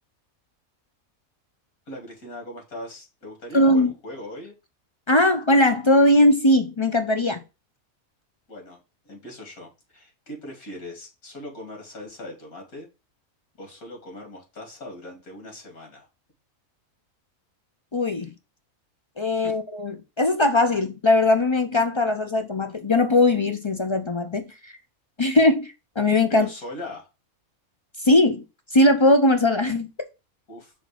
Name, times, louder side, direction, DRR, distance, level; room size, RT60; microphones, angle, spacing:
voice 1, 1.9-4.5 8.5-12.9 13.6-16.1 19.3-19.6 26.3-27.1 30.5-30.7, left 1 dB, 80° left, 2.9 m, -40 dB
voice 2, 3.5-3.9 5.1-7.4 17.9-18.3 19.2-24.7 25.2-26.5 28.0-28.4 28.7-29.9, left 1 dB, 50° left, 0.3 m, -20 dB
5.2 x 3.8 x 4.9 m
omnidirectional pair, 1.5 m